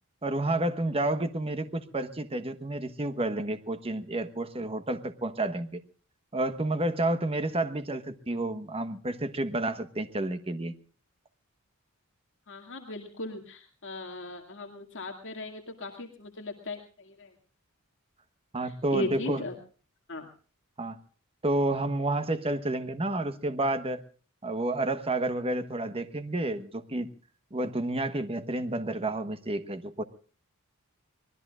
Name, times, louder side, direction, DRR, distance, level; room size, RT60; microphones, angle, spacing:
voice 1, 0.2-5.8 6.3-10.7 18.5-19.4 20.8-21.0 21.4-24.0 24.4-27.1 27.5-30.0, right 2 dB, 25° right, 10 dB, 1.2 m, -30 dB
voice 2, 12.5-17.3 18.6-19.6 20.1-20.3, left 2 dB, 55° left, 3 dB, 2.2 m, -38 dB
24.5 x 19.5 x 2.4 m, 0.41 s
head